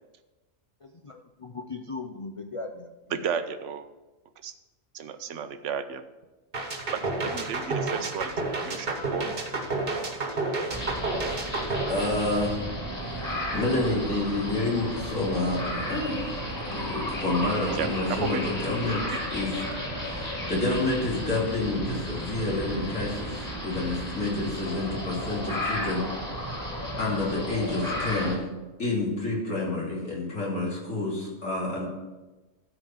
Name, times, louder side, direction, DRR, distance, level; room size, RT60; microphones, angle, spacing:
voice 1, 0.8-3.2, left 3 dB, 55° left, 3 dB, 0.3 m, -39 dB
voice 2, 3.1-3.8 4.4-4.5 4.9-6.0 6.9-8.3 8.6-9.4 17.3-17.5 17.8-18.4, right 7 dB, 70° right, 10 dB, 1.0 m, -33 dB
sound 1, 6.5-12.7, right 3 dB, 45° right, 1.4 m, -30 dB
sound 2, 10.7-28.4, equal, 15° left, 2.2 m, -33 dB
voice 3, 11.9-12.6 13.5-16.2 16.6-19.0 19.3-19.5 20.0-26.1 27.0-28.5 28.8-31.9, left 2 dB, 75° left, -4 dB, 3.2 m, -29 dB
12.5 x 5.0 x 5.7 m, 1.1 s
omnidirectional pair, 1.4 m